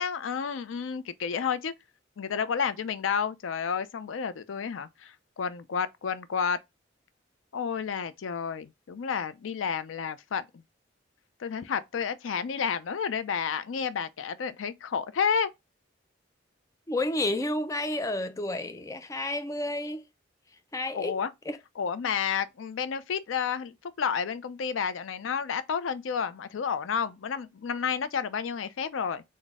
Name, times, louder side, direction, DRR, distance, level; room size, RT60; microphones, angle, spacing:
voice 1, 0.0-1.7 2.2-6.6 7.5-10.5 11.4-15.5 20.9-21.3 21.8-29.2, left 6 dB, 90° left, 0.4 m, -31 dB
voice 2, 16.9-20.0 20.7-21.2 21.5-21.6, left 1 dB, 15° left, 0.3 m, -30 dB
4.0 x 2.1 x 3.4 m
head